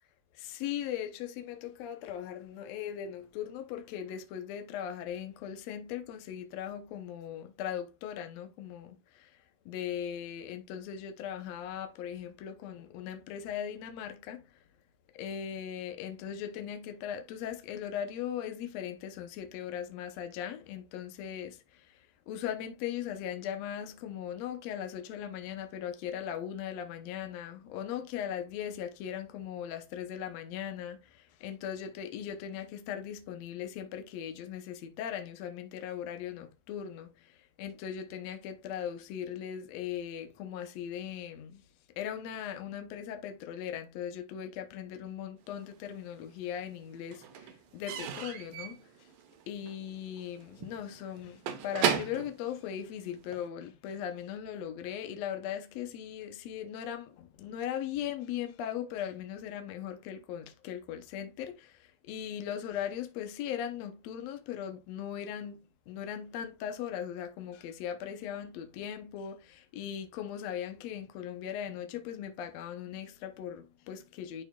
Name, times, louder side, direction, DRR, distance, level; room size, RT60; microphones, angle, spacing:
voice 1, 0.4-9.3 9.6-14.4 15.1-21.6 22.3-37.1 37.6-41.6 42.0-48.8 49.5-74.4, left 9 dB, 75° left, 1.6 m, -39 dB
Slam / Squeak / Wood, 45.6-46.5 46.7-53.5, right 8 dB, 80° right, 2.5 m, -36 dB
11.0 x 4.4 x 2.3 m
omnidirectional pair, 4.0 m